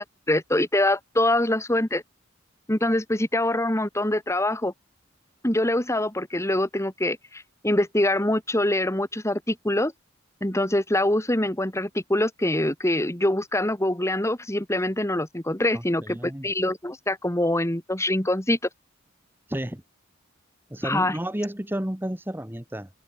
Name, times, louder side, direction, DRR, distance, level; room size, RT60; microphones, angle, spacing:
voice 1, 0.0-2.0 2.7-4.7 5.4-9.9 10.4-18.6 20.8-21.2, left 1 dB, 15° left, 2.4 m, -24 dB
voice 2, 15.7-16.4 19.5-19.8 20.7-22.9, right 1 dB, 10° right, 1.3 m, -31 dB
open air
head